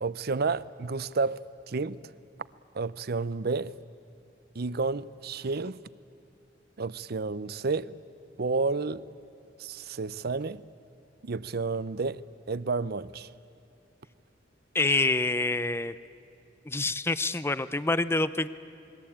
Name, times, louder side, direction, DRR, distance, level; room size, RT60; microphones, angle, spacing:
voice 1, 0.0-2.1 2.7-3.7 4.5-5.8 6.8-7.9 8.4-9.0 9.6-10.6 11.2-12.2 12.5-13.3, right 4 dB, 55° right, 0.6 m, -31 dB
voice 2, 14.7-15.9 16.7-18.5, left 2 dB, 15° left, 0.5 m, -26 dB
28.5 x 21.5 x 8.7 m
head